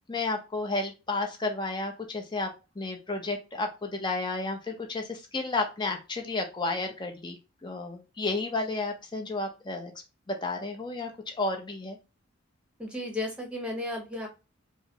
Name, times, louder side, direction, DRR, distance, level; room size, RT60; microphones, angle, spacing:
voice 1, 0.1-2.5 2.8-9.9 10.3-11.1 11.4-12.0, left 3 dB, 20° left, 3 dB, 0.6 m, -32 dB
voice 2, 12.8-14.3, left 1 dB, 5° right, 1 dB, 0.9 m, -34 dB
4.6 x 2.0 x 2.8 m, 0.28 s
head